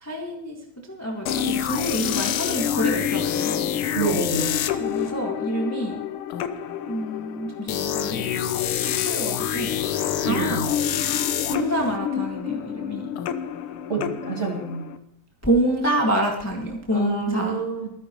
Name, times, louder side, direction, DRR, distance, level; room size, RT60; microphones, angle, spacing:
voice 1, 0.0-3.8 4.8-6.0 6.9-8.5 8.8-9.7 10.2-10.6 11.5-13.1 15.4-17.6, right 1 dB, 10° left, 0 dB, 0.9 m, -27 dB
sound 1, 1.3-15.0, left 9 dB, 80° left, 1.2 m, -27 dB
voice 2, 3.9-4.6 10.2-10.6 13.9-14.8 16.9-17.9, right 5 dB, 25° right, -1 dB, 2.8 m, -27 dB
25.5 x 10.5 x 3.1 m, 0.79 s
omnidirectional pair, 3.4 m